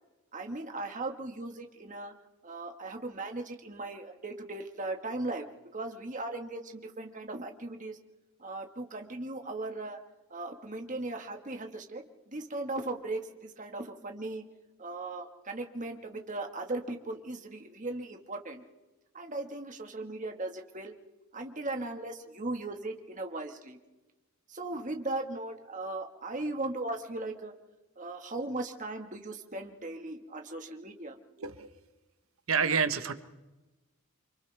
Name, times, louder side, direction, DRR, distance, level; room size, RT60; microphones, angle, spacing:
voice 1, 0.3-2.1 2.4-5.5 5.7-8.0 8.4-10.0 10.3-14.4 14.8-18.6 19.1-20.9 21.3-23.8 24.5-27.5 28.0-31.2, right 2 dB, 35° right, 4 dB, 1.8 m, -38 dB
voice 2, 32.5-33.1, right 6 dB, 70° right, 10 dB, 1.2 m, -28 dB
29.0 x 25.5 x 3.5 m, 1.1 s
head